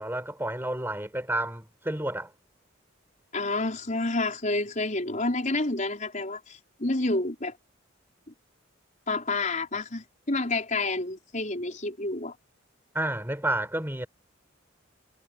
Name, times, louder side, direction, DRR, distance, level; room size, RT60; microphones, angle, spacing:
voice 1, 0.0-2.3 12.9-14.1, right 1 dB, 10° right, 5.2 m, -30 dB
voice 2, 3.3-7.5 9.1-12.3, left 2 dB, 40° left, 4.9 m, -29 dB
head